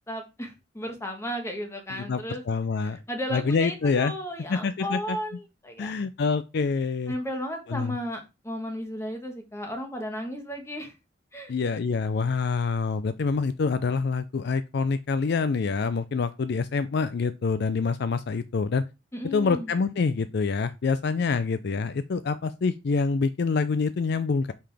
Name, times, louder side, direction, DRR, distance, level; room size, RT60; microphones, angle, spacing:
voice 1, 0.1-2.4 2.8-5.9 7.1-10.9 11.3-11.5 19.1-19.7, equal, 15° left, 1.4 m, -34 dB
voice 2, 1.9-3.0 3.3-4.1 4.5-5.2 5.8-7.2 7.7-8.0 11.5-18.8 19.3-24.5, left 4 dB, 60° left, 0.4 m, -26 dB
5.7 x 5.0 x 3.4 m
head